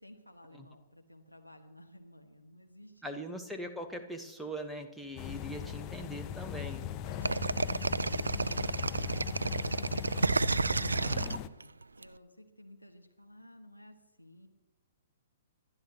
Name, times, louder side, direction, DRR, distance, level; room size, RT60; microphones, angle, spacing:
voice 1, 0.0-3.2 7.0-14.5, left 1 dB, 90° left, 3 dB, 1.5 m, -55 dB
voice 2, 3.0-6.9 10.9-11.4, equal, ahead, 4 dB, 1.2 m, -41 dB
sound 1, 5.2-11.5, left 10 dB, 25° left, 0.6 m, -40 dB
sound 2, 7.2-12.0, right 3 dB, 75° right, 0.3 m, -31 dB
26.0 x 11.5 x 3.0 m, 1.1 s
figure-of-eight pair, 115°, 0 cm